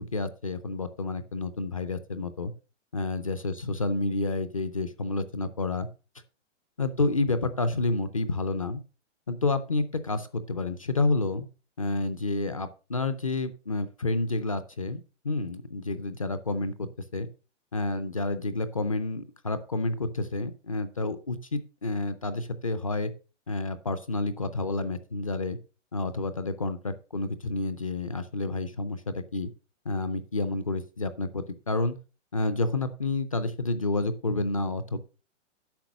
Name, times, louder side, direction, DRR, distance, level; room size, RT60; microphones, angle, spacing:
voice 1, 0.0-2.5 2.9-5.9 6.8-8.8 9.3-11.5 11.8-17.3 17.7-23.1 23.5-25.6 25.9-29.5 29.9-31.9 32.3-35.0, left 2 dB, 30° left, 12 dB, 0.5 m, -29 dB
10.5 x 6.3 x 5.1 m, 0.33 s
hypercardioid pair, 175°, 37 cm